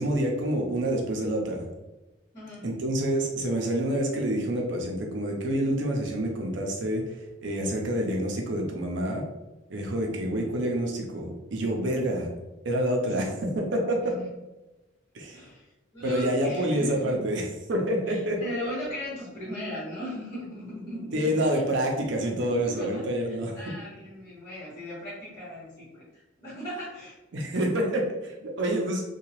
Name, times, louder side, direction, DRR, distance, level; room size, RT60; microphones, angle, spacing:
voice 1, 0.0-1.7 2.6-7.0 7.4-9.2 9.7-12.3 12.6-14.1 15.1-15.4 16.0-18.4 21.1-23.6 27.3-29.0, right 1 dB, 70° right, 0 dB, 0.5 m, -27 dB
voice 2, 2.3-2.8 13.1-13.2 14.0-14.3 15.3-17.2 18.1-21.6 22.4-27.2, equal, 30° left, -13 dB, 1.4 m, -38 dB
2.7 x 2.3 x 2.9 m, 1.0 s
head